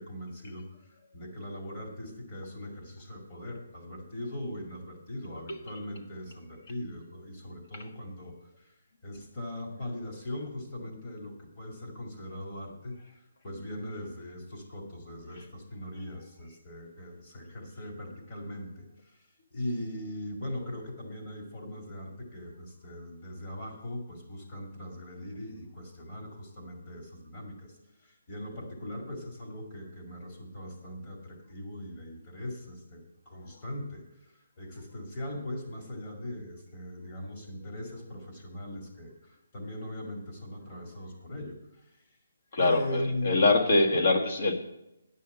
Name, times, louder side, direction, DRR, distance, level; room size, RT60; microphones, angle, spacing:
voice 1, 0.0-8.7 9.0-42.0 42.6-43.4 43.9-44.1, left 1 dB, 20° left, -1 dB, 2.1 m, -40 dB
voice 2, 42.5-44.5, left 2 dB, 40° left, 4 dB, 1.5 m, -24 dB
10.0 x 5.6 x 8.1 m, 0.88 s
hypercardioid pair, 175°, 0 cm